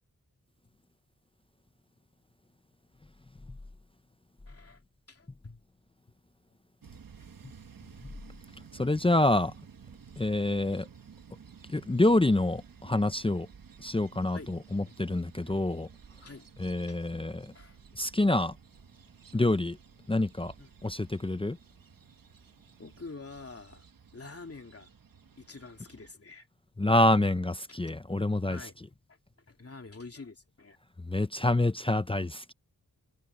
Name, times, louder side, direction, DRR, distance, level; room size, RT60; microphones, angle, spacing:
voice 1, 4.5-4.8 5.1-5.6 10.7-10.8 14.3-14.5 14.9-15.0 15.4-15.6 16.2-16.5 16.9-17.0 17.5-17.8 20.6-20.7 22.8-23.9 24.1-24.9 25.4-26.5 27.7-27.8 28.5-28.7 29.1-29.2 29.5-30.8, left 3 dB, 40° left, 2.8 m, -47 dB
sound 1, 6.8-26.1, right 6 dB, 65° right, 1.4 m, -54 dB
voice 2, 8.7-9.5 10.2-10.9 11.7-13.5 13.8-15.9 16.6-17.5 17.9-18.6 19.3-19.8 20.1-20.5 20.8-21.6 26.8-28.7 31.0-32.5, left 2 dB, 15° left, 0.7 m, -27 dB
wide cardioid pair, 65°, 37 cm